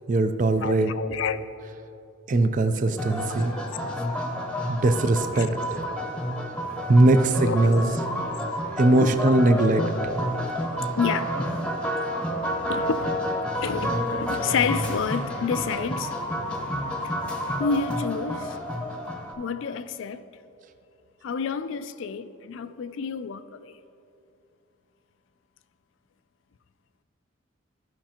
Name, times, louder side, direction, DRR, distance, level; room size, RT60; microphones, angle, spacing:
voice 1, 0.1-0.9 2.3-3.5 4.7-5.6 6.9-7.9 8.8-9.8, right 2 dB, 40° right, 0.4 m, -20 dB
voice 2, 0.6-1.4 3.5-3.9 5.3-5.5 5.8-6.1 7.4-7.7 8.9-9.4 9.8-9.9 10.2-10.3 11.0-11.3 12.0-12.1 12.4-13.2 13.5-19.0 19.4-20.2 21.2-23.7, left 6 dB, 65° left, 0.3 m, -30 dB
sound 1, 3.0-19.3, equal, 5° left, 0.8 m, -30 dB
14.0 x 5.9 x 2.9 m
head